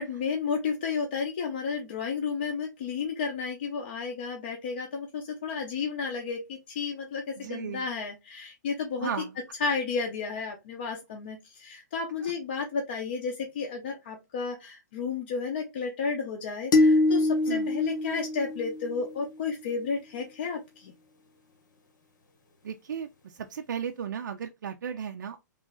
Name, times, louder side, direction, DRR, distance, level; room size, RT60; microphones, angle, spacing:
voice 1, 0.0-9.1 9.6-20.9, left 5 dB, 35° left, 0.5 m, -32 dB
voice 2, 7.4-7.8 9.0-9.3 17.5-17.7 22.6-23.1 23.5-25.4, right 7 dB, 85° right, 0.4 m, -34 dB
sound 1, 16.7-19.1, left 2 dB, 90° left, 1.3 m, -24 dB
3.1 x 2.5 x 3.7 m
hypercardioid pair, 175°, 10 cm